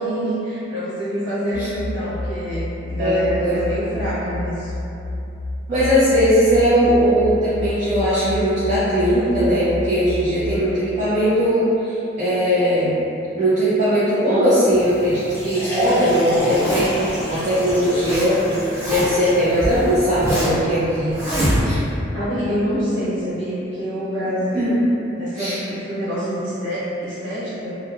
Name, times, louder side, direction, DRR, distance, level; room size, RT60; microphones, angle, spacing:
voice 1, 0.0-4.7 22.1-24.8 25.2-27.8, equal, 85° right, -12 dB, 1.2 m, -26 dB
sound 1, 1.5-10.6, left 2 dB, 85° left, 0.5 m, -30 dB
voice 2, 3.0-3.5 5.7-12.9 13.3-18.4 18.9-21.1 21.6-21.8 24.5-24.8 25.4-25.6, equal, 40° right, -13 dB, 0.5 m, -19 dB
sound 2, 14.7-20.3, equal, 10° left, 0.8 m, -28 dB
Zipper (clothing), 16.4-17.1 17.7-18.3 18.5-19.3 19.8-20.6 21.1-21.9, equal, 15° right, 0.9 m, -24 dB
2.9 x 2.2 x 2.3 m, 2.9 s
head